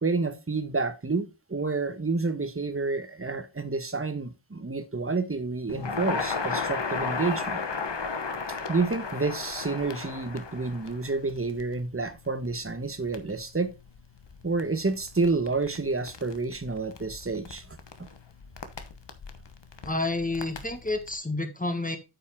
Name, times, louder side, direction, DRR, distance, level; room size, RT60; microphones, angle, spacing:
voice 1, 0.0-7.6 8.7-13.7 14.4-17.7 18.0-18.1, right 3 dB, 30° right, 1.1 m, -29 dB
Crackle, 5.7-21.1, left 4 dB, 75° left, 1.1 m, -36 dB
voice 2, 19.8-22.0, left 2 dB, 20° left, 1.4 m, -29 dB
8.8 x 5.5 x 3.6 m
wide cardioid pair, 45°, 43 cm